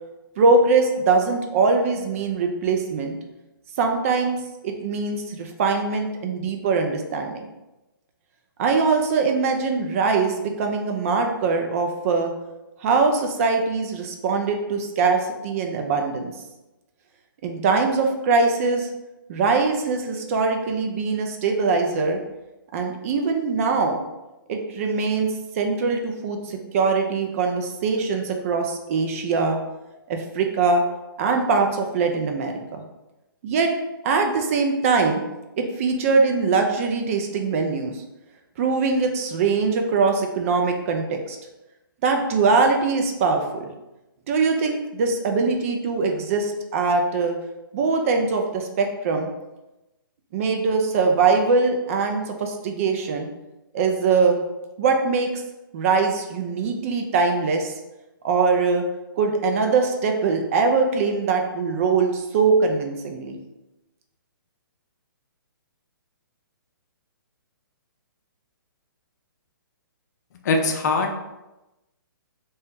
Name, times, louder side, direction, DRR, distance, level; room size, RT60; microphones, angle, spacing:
voice 1, 0.4-3.2 3.8-4.4 4.6-7.5 8.6-12.3 12.8-16.3 17.4-18.9 19.3-22.2 22.7-24.0 24.5-29.6 30.1-30.8 31.2-32.8 33.4-33.7 34.0-35.2 35.6-38.0 38.6-41.4 42.0-43.7 44.3-47.4 47.7-49.3 50.3-53.3 53.7-54.4 54.8-55.4 55.7-57.7 58.2-58.8 59.2-63.4, right 4 dB, 40° right, 4 dB, 0.4 m, -22 dB
voice 2, 70.5-71.2, left 3 dB, 50° left, 4 dB, 0.5 m, -21 dB
2.8 x 2.1 x 3.5 m, 0.99 s
hypercardioid pair, 140°, 12 cm